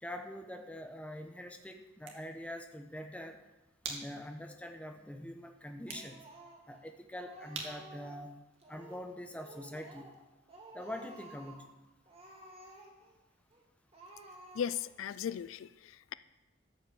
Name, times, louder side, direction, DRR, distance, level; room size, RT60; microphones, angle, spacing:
voice 1, 0.0-3.4 3.8-6.2 6.7-8.4 8.7-10.1 10.7-11.8, left 1 dB, 5° left, 5 dB, 0.8 m, -44 dB
sound 1, 1.8-9.2, right 4 dB, 75° right, 2.1 m, -50 dB
Speech, 5.9-6.8 7.1-8.2 8.6-9.1 9.4-10.2 10.5-11.7 12.1-13.1 13.5-13.6 13.9-14.9, right 1 dB, 30° right, 1.9 m, -53 dB
voice 2, 14.6-16.1, left 8 dB, 80° left, 17 dB, 0.3 m, -37 dB
13.0 x 5.4 x 7.8 m, 1.1 s
head